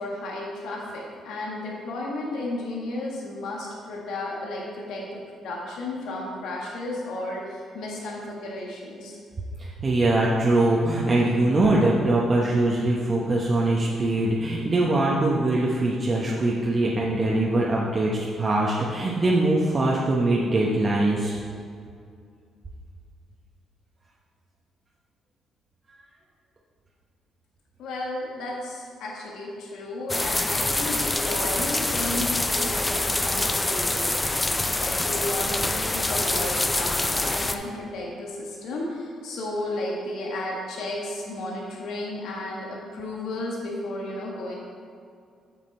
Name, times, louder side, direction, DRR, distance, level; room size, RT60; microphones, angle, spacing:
voice 1, 0.0-5.1 5.3-9.2 27.8-44.6, left 2 dB, 80° left, -3 dB, 1.6 m, -33 dB
voice 2, 9.6-21.4, right 2 dB, 35° right, -4 dB, 1.0 m, -22 dB
sound 1, 30.1-37.6, left 2 dB, 15° left, 0.5 m, -25 dB
7.6 x 6.6 x 4.2 m, 2.3 s
cardioid pair, 90°, 0 cm